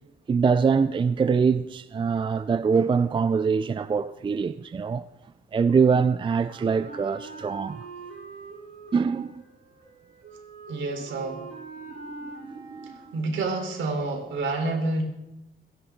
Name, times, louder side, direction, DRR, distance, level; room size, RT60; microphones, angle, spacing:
voice 1, 0.3-5.1 5.5-7.9 8.9-9.4 11.9-13.0, right 5 dB, 25° right, 0.4 m, -24 dB
Wind instrument woodwind instrument, 6.4-13.4, right 4 dB, 55° right, 7.1 m, -43 dB
voice 2, 10.7-11.4 12.8-15.0, right 2 dB, 70° right, 3.9 m, -28 dB
29.5 x 11.0 x 3.8 m
cardioid pair, 90°, 20 cm